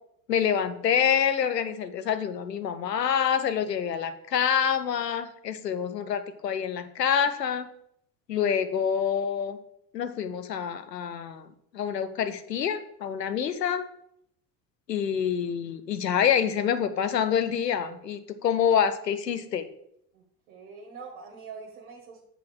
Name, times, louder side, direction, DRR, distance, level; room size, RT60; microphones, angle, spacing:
voice 1, 0.3-7.7 8.3-9.6 9.9-11.5 11.7-13.9 14.9-19.7, left 8 dB, 90° left, 10 dB, 0.7 m, -26 dB
voice 2, 20.1-22.2, right 5 dB, 60° right, 0 dB, 1.6 m, -44 dB
7.5 x 4.1 x 6.0 m, 0.72 s
figure-of-eight pair, 70°, 48 cm